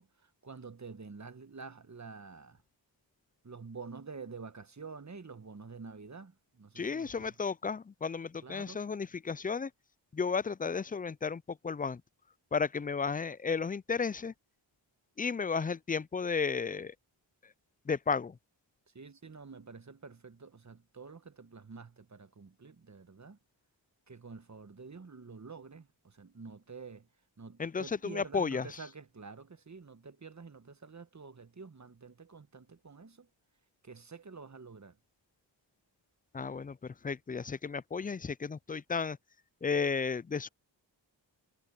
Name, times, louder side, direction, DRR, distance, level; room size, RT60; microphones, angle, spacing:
voice 1, 0.0-2.6 3.4-7.3 8.4-8.8 18.9-23.4 24.1-27.1 27.4-33.3 33.8-35.0, right 4 dB, 35° right, 1.3 m, -48 dB
voice 2, 6.8-9.7 10.1-12.0 12.5-14.3 15.2-16.9 17.9-18.4 27.6-28.7 36.3-39.2 39.6-40.5, left 5 dB, 20° left, 0.3 m, -33 dB
cardioid pair, 40°, 47 cm